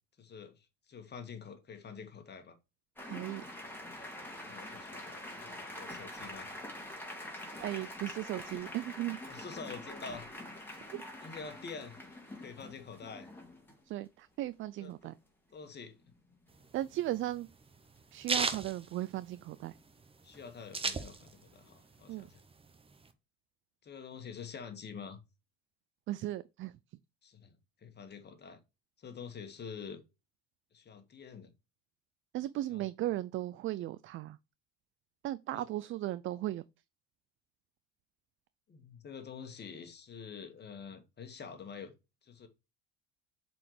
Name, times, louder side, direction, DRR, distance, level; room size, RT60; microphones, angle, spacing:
voice 1, 0.2-2.6 4.4-6.6 7.1-7.2 9.3-10.3 10.7-10.8 11.2-12.0 12.4-13.3 14.8-15.1 15.5-16.0 20.2-22.4 23.8-25.2 27.2-28.6 29.0-30.0 30.7-31.5 32.7-32.8 35.5-35.7 38.7-41.9 42.2-42.5, left 6 dB, 35° left, 1.7 m, -47 dB
sound 1, 3.0-13.7 15.6-15.7 16.0-16.3 20.3-20.6, left 1 dB, 5° left, 2.4 m, -45 dB
voice 2, 3.0-3.4 7.1-7.2 7.6-9.2 10.9-11.0 13.9-15.1 16.7-17.5 18.1-19.8 22.1-22.3 26.1-26.7 32.3-34.4 35.2-36.6, right 14 dB, 45° right, 0.4 m, -36 dB
sound 2, 16.5-19.7 20.0-20.1 20.3-21.6 21.9-23.1, right 4 dB, 20° right, 0.9 m, -35 dB
7.2 x 4.3 x 3.3 m
supercardioid pair, 90°, 30 cm